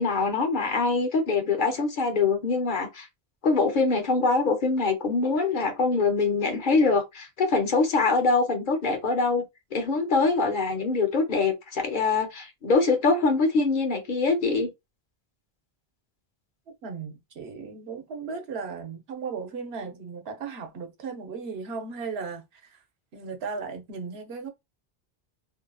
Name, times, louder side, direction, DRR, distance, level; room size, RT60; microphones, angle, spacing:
voice 1, 0.0-3.1 3.4-9.4 9.7-14.7, left 4 dB, 55° left, 0.8 m, -24 dB
voice 2, 16.7-22.8 23.1-24.5, right 5 dB, 85° right, 1.0 m, -36 dB
2.7 x 2.6 x 2.2 m
omnidirectional pair, 1.0 m